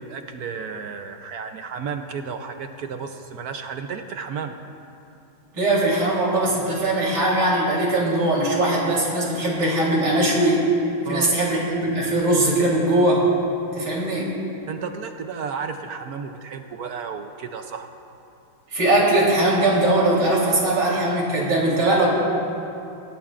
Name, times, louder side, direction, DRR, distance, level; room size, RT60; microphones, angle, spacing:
voice 1, 0.0-4.5 11.1-11.3 14.7-17.9, right 6 dB, 70° right, 6 dB, 0.9 m, -33 dB
voice 2, 5.5-10.6 11.1-13.3 13.7-14.3 18.7-22.1, right 1 dB, 85° right, -5 dB, 4.5 m, -20 dB
23.0 x 17.5 x 2.5 m, 2.7 s
omnidirectional pair, 2.3 m